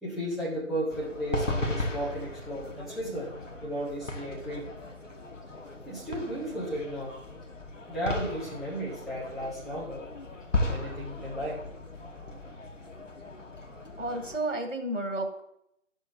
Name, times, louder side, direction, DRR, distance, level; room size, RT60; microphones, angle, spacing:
voice 1, 0.0-3.3 3.6-4.7 5.9-7.1 7.9-10.0 10.6-11.6, right 1 dB, ahead, -12 dB, 0.8 m, -34 dB
sound 1, 0.9-14.4, left 2 dB, 85° left, 1.4 m, -37 dB
voice 2, 14.0-15.4, right 1 dB, 85° right, 3 dB, 2.0 m, -31 dB
12.0 x 6.3 x 2.5 m, 0.75 s
figure-of-eight pair, 145°, 37 cm